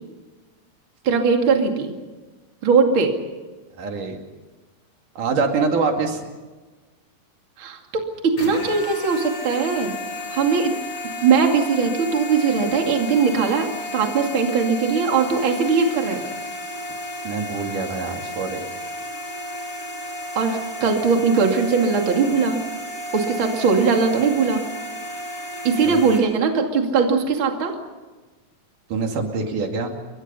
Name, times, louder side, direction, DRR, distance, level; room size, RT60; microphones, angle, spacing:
voice 1, 1.0-1.9 2.6-3.1 7.6-10.0 10.3-10.7 11.2-13.7 13.9-16.3 20.4-22.6 23.1-24.6 25.6-27.7, right 5 dB, 40° right, 3 dB, 3.0 m, -20 dB
voice 2, 3.8-4.2 5.2-6.3 17.2-18.7 25.8-26.0 28.9-29.9, right 4 dB, 75° right, 3 dB, 3.9 m, -25 dB
sound 1, 8.4-26.2, left 1 dB, 45° left, 5.1 m, -33 dB
29.0 x 23.0 x 5.6 m, 1.3 s
omnidirectional pair, 3.7 m